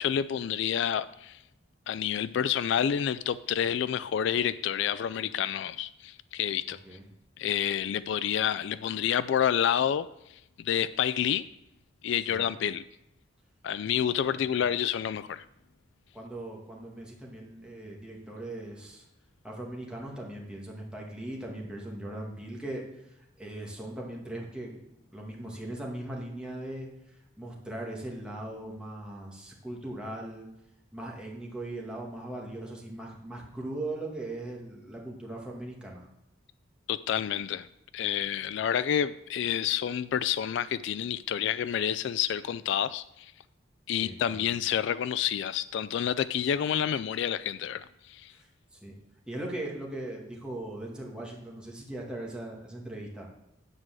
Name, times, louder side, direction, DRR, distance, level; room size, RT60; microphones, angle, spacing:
voice 1, 0.0-1.4 1.9-6.8 7.4-10.1 10.6-11.4 12.0-12.8 13.6-15.4 36.9-37.7 37.9-43.3 43.9-48.3, left 9 dB, 65° left, 16 dB, 0.3 m, -29 dB
voice 2, 14.3-14.6 16.1-19.0 19.4-24.8 25.1-26.9 27.4-30.5 30.9-36.1 43.9-44.5 48.3-48.9 49.3-53.3, right 1 dB, 5° right, -2 dB, 2.0 m, -39 dB
9.8 x 4.7 x 7.5 m, 0.88 s
head